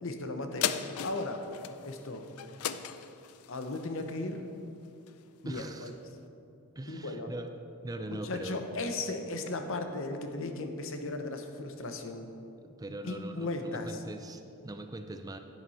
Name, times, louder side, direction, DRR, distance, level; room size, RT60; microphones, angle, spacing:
voice 1, 0.0-0.7 1.0-1.5 1.8-2.3 3.5-4.4 5.4-5.9 6.9-7.3 8.1-12.3 13.0-14.0, left 2 dB, 65° left, 6 dB, 0.9 m, -36 dB
sound 1, 0.6-5.4 5.9-6.0, left 9 dB, 90° left, 0.4 m, -37 dB
voice 2, 5.4-5.9 6.8-7.5 7.8-8.6 12.6-15.4, right 2 dB, 15° right, 7 dB, 0.4 m, -41 dB
10.5 x 9.2 x 4.2 m, 2.7 s
head